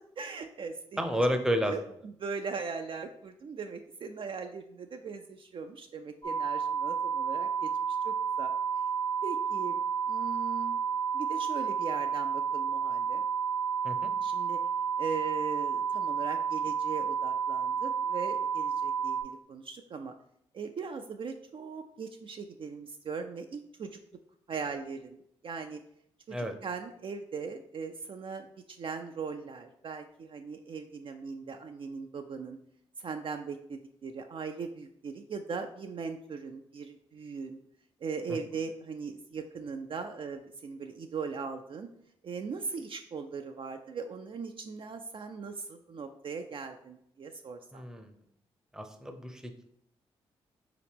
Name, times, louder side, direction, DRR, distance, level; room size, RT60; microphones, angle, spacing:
voice 1, 0.2-1.0 1.6-1.8 2.2-8.5 9.2-9.8 10.1-10.8 11.1-13.2 14.2-14.6 15.0-20.1 20.5-24.0 24.5-25.8 26.3-26.4 26.6-32.6 33.0-37.6 38.0-41.9 42.2-47.8, right 5 dB, 45° right, 5 dB, 0.3 m, -39 dB
voice 2, 1.0-1.7 13.8-14.1 26.3-26.5 38.3-38.4 47.7-48.1 48.7-49.7, equal, 5° right, 5 dB, 0.7 m, -31 dB
sound 1, 6.2-19.2, right 7 dB, 50° left, 1.0 m, -31 dB
4.1 x 2.9 x 3.5 m, 0.73 s
supercardioid pair, 45°, 12 cm